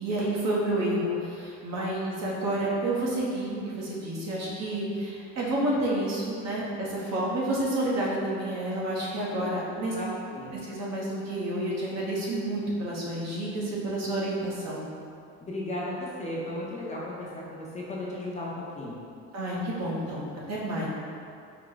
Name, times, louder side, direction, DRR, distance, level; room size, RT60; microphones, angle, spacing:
voice 1, 0.0-9.9 10.7-14.8 19.3-20.9, right 1 dB, 55° right, -6 dB, 1.1 m, -29 dB
voice 2, 9.8-10.5 15.4-19.0, left 1 dB, 20° left, -6 dB, 0.7 m, -35 dB
4.7 x 2.1 x 3.9 m, 2.5 s
cardioid pair, 110°, 33 cm